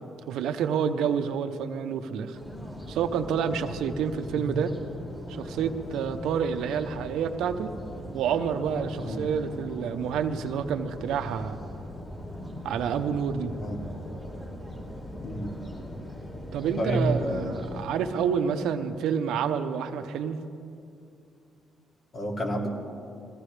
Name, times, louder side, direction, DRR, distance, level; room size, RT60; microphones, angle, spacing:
voice 1, 0.0-2.4 2.9-4.7 5.3-7.7 8.1-11.6 12.6-13.5 16.5-20.4, right 7 dB, 85° right, 8 dB, 0.8 m, -28 dB
sound 1, 2.3-17.9, equal, 25° left, 4.6 m, -40 dB
voice 2, 16.8-17.7 22.1-22.7, equal, 45° left, 0 dB, 2.5 m, -29 dB
22.0 x 16.0 x 3.4 m, 2.5 s
cardioid pair, 90°, 0 cm